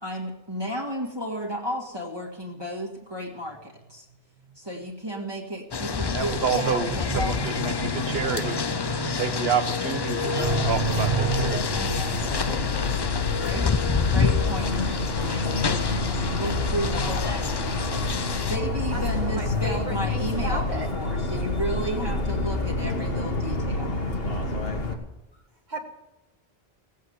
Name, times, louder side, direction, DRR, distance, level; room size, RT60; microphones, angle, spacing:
voice 1, 0.0-4.1 4.6-7.6 11.8-12.4 13.4-13.7 14.0-18.1 18.5-24.0, right 1 dB, 25° right, -3 dB, 2.0 m, -33 dB
sound 1, 5.7-18.6, left 6 dB, 35° left, 0.4 m, -28 dB
voice 2, 6.0-11.6 12.1-12.7, right 6 dB, 70° right, 9 dB, 1.3 m, -28 dB
Motor vehicle (road) / Siren, 10.4-24.9, left 3 dB, 65° left, 1.8 m, -28 dB
voice 3, 18.9-20.9 22.8-23.4 25.7-25.8, right 1 dB, 45° right, 1 dB, 1.8 m, -35 dB
17.5 x 8.4 x 8.0 m, 0.96 s
omnidirectional pair, 1.1 m